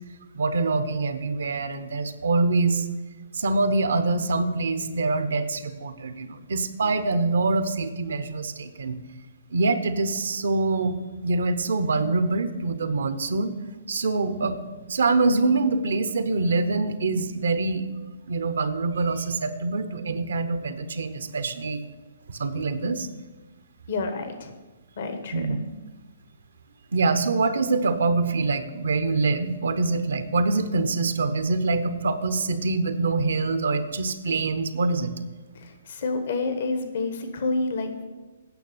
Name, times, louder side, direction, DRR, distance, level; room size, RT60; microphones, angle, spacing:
voice 1, 0.3-2.9 3.3-9.0 9.5-11.0 11.2-13.5 13.9-14.6 14.9-17.9 18.3-21.8 22.3-23.1 25.3-25.6 26.9-35.1, right 3 dB, 75° right, 11 dB, 0.8 m, -25 dB
voice 2, 23.9-24.5 25.0-25.6 35.5-38.1, left 3 dB, 60° left, 7 dB, 1.2 m, -29 dB
9.3 x 6.1 x 6.9 m, 1.2 s
hypercardioid pair, 135°, 0 cm